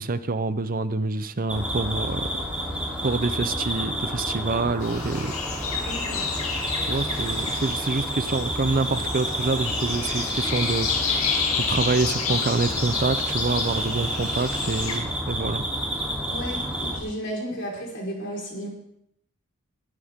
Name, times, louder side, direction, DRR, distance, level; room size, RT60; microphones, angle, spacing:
voice 1, 0.0-2.3 3.0-5.3 6.9-11.4 11.7-15.7, right 3 dB, 40° right, 12 dB, 0.7 m, -26 dB
sound 1, 1.5-17.0, equal, 5° right, 3.3 m, -30 dB
sound 2, 4.8-15.0, left 5 dB, 85° left, 2.6 m, -30 dB
voice 2, 5.8-6.2 16.3-18.7, equal, 60° left, -1 dB, 4.8 m, -33 dB
21.5 x 11.0 x 3.7 m, 0.75 s
head